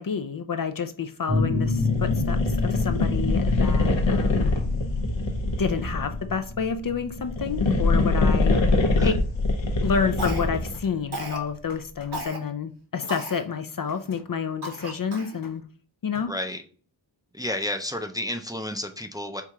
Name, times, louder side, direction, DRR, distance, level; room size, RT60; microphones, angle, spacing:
voice 1, 0.0-4.5 5.6-8.6 9.0-9.2 9.8-15.6 16.0-16.3, left 6 dB, 50° left, 0.5 m, -29 dB
sound 1, 1.3-10.7, left 3 dB, 75° right, 1.4 m, -30 dB
sound 2, 1.8-6.2 7.2-10.8, left 2 dB, 75° left, 0.9 m, -24 dB
voice 2, 8.7-9.1 16.3-16.6 17.3-19.4, left 1 dB, 10° right, 0.5 m, -31 dB
Cough, 10.2-10.7 11.1-11.5 12.1-12.4 13.1-13.4 14.0-14.1 14.6-15.4, right 2 dB, 60° right, 1.2 m, -35 dB
4.7 x 2.8 x 3.5 m
wide cardioid pair, 60°, 45 cm